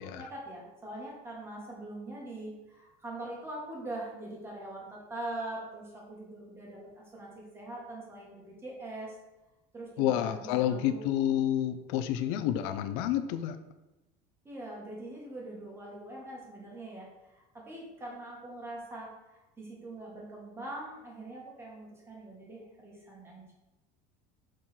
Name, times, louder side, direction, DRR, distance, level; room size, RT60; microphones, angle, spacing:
voice 1, 0.0-9.1 9.7-11.0 14.4-23.5, right 1 dB, 15° right, -3 dB, 1.5 m, -43 dB
voice 2, 10.0-13.6, left 11 dB, 75° left, 9 dB, 0.5 m, -29 dB
6.2 x 3.7 x 4.3 m, 1.0 s
cardioid pair, 170°, 17 cm